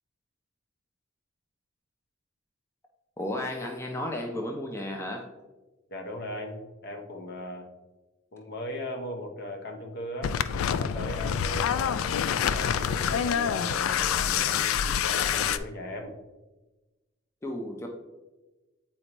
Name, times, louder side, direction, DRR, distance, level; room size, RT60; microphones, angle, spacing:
voice 1, 3.2-5.3 17.4-17.9, left 1 dB, 15° left, 2 dB, 0.5 m, -33 dB
voice 2, 5.9-7.7 8.3-16.1, left 1 dB, 55° left, 4 dB, 0.8 m, -38 dB
sound 1, 10.2-15.6, left 8 dB, 85° left, 0.3 m, -27 dB
8.1 x 4.3 x 2.9 m, 1.1 s
head